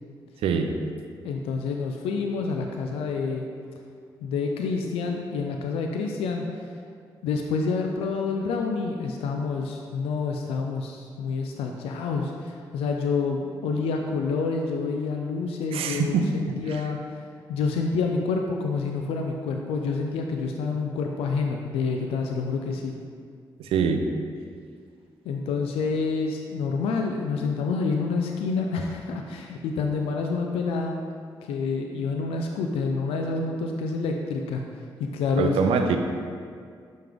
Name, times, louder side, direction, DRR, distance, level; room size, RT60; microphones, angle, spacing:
voice 1, 0.4-0.7 15.7-16.3 16.7-16.8 23.6-24.1 35.4-36.0, right 6 dB, 80° right, 6 dB, 0.5 m, -24 dB
voice 2, 1.2-3.5 4.2-6.4 7.2-17.0 17.5-22.9 25.3-31.0 31.4-34.6 35.0-35.6, left 4 dB, 85° left, 2 dB, 0.4 m, -28 dB
5.7 x 5.2 x 3.6 m, 2.1 s
supercardioid pair, 45°, 10 cm